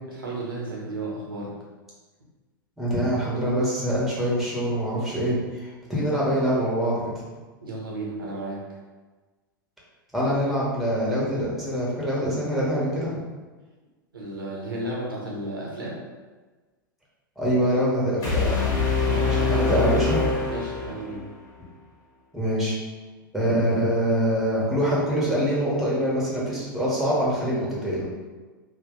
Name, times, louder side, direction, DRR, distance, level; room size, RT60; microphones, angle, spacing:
voice 1, 0.2-1.5 7.6-8.8 14.1-16.0 19.0-19.9 20.5-21.3, right 2 dB, 80° right, -4 dB, 1.2 m, -33 dB
voice 2, 2.8-7.0 10.1-13.1 17.4-18.6 19.2-20.2 22.3-22.8 23.3-28.1, equal, ahead, -6 dB, 1.4 m, -24 dB
sound 1, 18.2-21.3, left 4 dB, 30° left, 1.4 m, -24 dB
3.4 x 2.7 x 3.8 m, 1.3 s
figure-of-eight pair, 95°, 11 cm